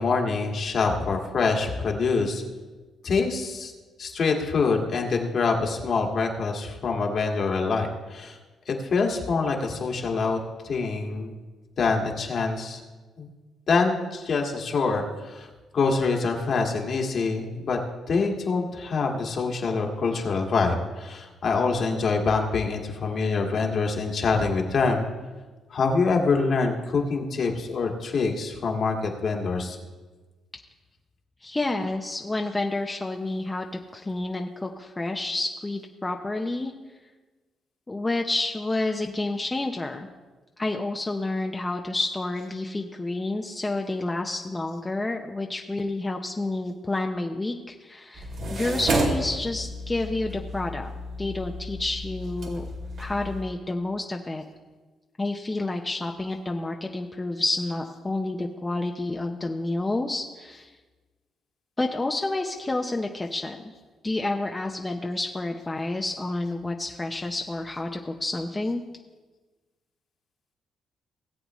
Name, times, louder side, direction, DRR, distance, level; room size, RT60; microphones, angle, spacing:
voice 1, 0.0-2.4 3.0-3.7 4.0-8.4 8.7-10.4 10.6-11.4 11.8-12.8 13.2-13.3 13.7-15.5 15.7-17.8 18.1-25.0 25.7-29.8, left 4 dB, 55° left, 1 dB, 1.8 m, -25 dB
voice 2, 31.4-33.7 33.9-36.7 37.9-40.1 40.6-50.9 51.2-52.7 53.0-54.4 55.2-60.7 61.8-63.6 64.0-68.8, left 2 dB, 20° left, 2 dB, 0.7 m, -29 dB
sound 1, 48.2-53.4, right 1 dB, 65° right, 2.5 m, -31 dB
18.0 x 8.0 x 3.1 m, 1.3 s
cardioid pair, 90°, 0 cm